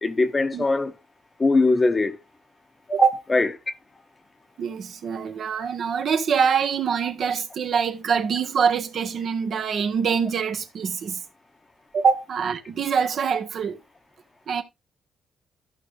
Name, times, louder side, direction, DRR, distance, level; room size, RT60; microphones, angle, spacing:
voice 1, 0.0-0.9 1.4-2.2 3.3-3.5, left 3 dB, 25° left, 1.1 m, -20 dB
voice 2, 4.6-11.2 11.9-13.8 14.5-14.6, right 6 dB, 60° right, 1.3 m, -24 dB
14.0 x 5.1 x 3.1 m
cardioid pair, 90°, 0 cm